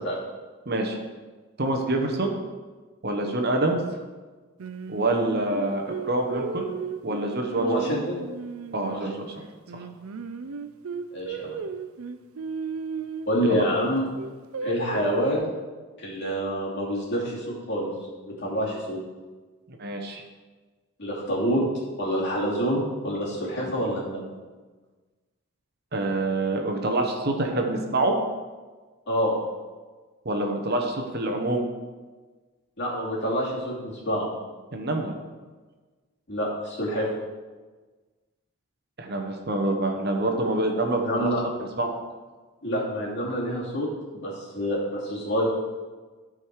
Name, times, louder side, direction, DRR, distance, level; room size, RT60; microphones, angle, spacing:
voice 1, 0.7-1.0 1.6-2.3 3.0-3.8 4.9-6.7 7.0-7.7 8.7-9.4 13.5-13.6 19.8-20.2 25.9-28.1 30.2-31.6 34.7-35.1 39.0-41.3 41.8-41.9, right 2 dB, 45° right, 3 dB, 1.0 m, -26 dB
Singing, 4.6-9.3 9.7-13.7 14.2-15.3, right 4 dB, 70° right, 0.5 m, -35 dB
voice 2, 7.6-8.2 8.9-9.0 11.1-11.6 13.3-14.1 14.6-15.5 16.0-17.9 18.2-19.0 21.0-21.6 22.0-24.3 29.1-29.3 32.8-34.3 36.3-37.1 41.0-41.4 42.6-45.4, equal, 50° left, -5 dB, 2.7 m, -27 dB
12.5 x 4.9 x 4.7 m, 1.3 s
head